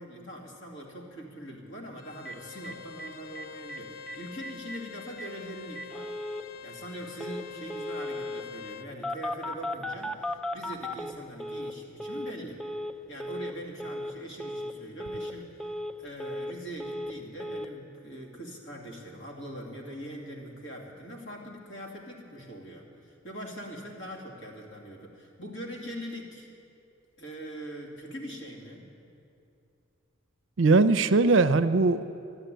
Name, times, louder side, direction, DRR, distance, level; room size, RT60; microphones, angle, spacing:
voice 1, 0.0-6.2 6.6-12.7 13.1-26.5 27.2-28.9, right 1 dB, 70° left, -2 dB, 2.6 m, -42 dB
Bowed string instrument, 2.0-8.9, left 8 dB, 85° left, 0.7 m, -45 dB
Telephone, 2.3-2.4 2.6-2.7 3.0-3.1 3.4-3.8 4.1-4.2 4.4-4.8 5.2-5.3 5.8-6.4 7.2-7.4 7.7-8.4 9.0-11.7 12.0-12.3 12.6-12.9 13.2-13.5 13.8-14.1 14.4-14.7 15.0-15.3 15.6-16.5 16.8-17.1 17.4-17.7, left 1 dB, 5° left, 0.4 m, -36 dB
voice 2, 30.6-32.1, right 3 dB, 65° right, 13 dB, 0.5 m, -21 dB
13.0 x 11.5 x 9.0 m, 2.6 s
head